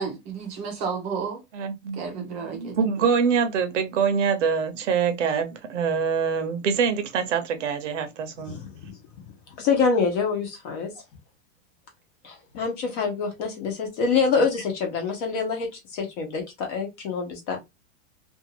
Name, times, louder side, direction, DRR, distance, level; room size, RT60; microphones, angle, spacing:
voice 1, 0.0-1.4 2.0-2.8, right 5 dB, 20° right, 0.6 m, -31 dB
voice 2, 1.5-8.6, right 6 dB, 70° right, 0.8 m, -25 dB
voice 3, 8.4-8.9 9.6-10.9 12.2-15.7 15.9-17.6, left 5 dB, 35° left, 0.9 m, -26 dB
2.6 x 2.5 x 2.9 m
supercardioid pair, 170°, 37 cm